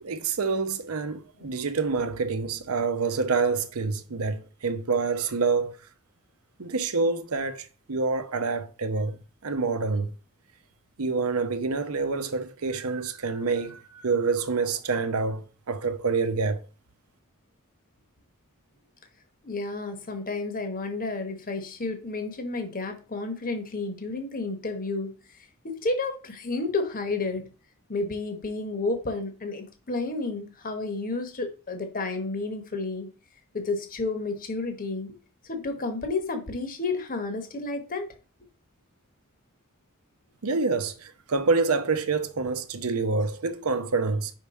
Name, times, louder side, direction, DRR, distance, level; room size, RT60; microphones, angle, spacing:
voice 1, 0.0-5.8 6.6-9.2 9.4-10.1 11.0-16.6 40.4-44.3, right 4 dB, 80° right, 0.8 m, -27 dB
voice 2, 19.4-25.1 25.6-27.5 27.9-33.1 33.5-35.2 35.4-38.1, left 3 dB, 40° left, 1.0 m, -31 dB
5.6 x 3.5 x 5.4 m
head